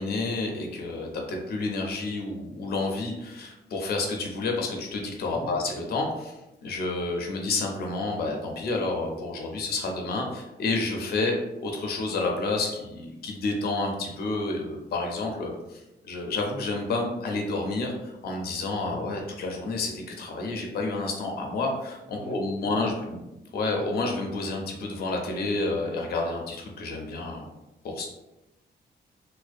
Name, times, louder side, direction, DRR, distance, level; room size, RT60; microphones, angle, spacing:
voice 1, 0.0-6.4 6.6-23.2 23.5-27.5 27.8-28.1, left 3 dB, 60° left, 1 dB, 0.4 m, -30 dB
voice 2, 5.3-5.6 18.8-19.1 22.1-22.9, equal, 20° right, -5 dB, 0.4 m, -42 dB
2.3 x 2.1 x 2.5 m, 0.96 s
wide cardioid pair, 180°, 18 cm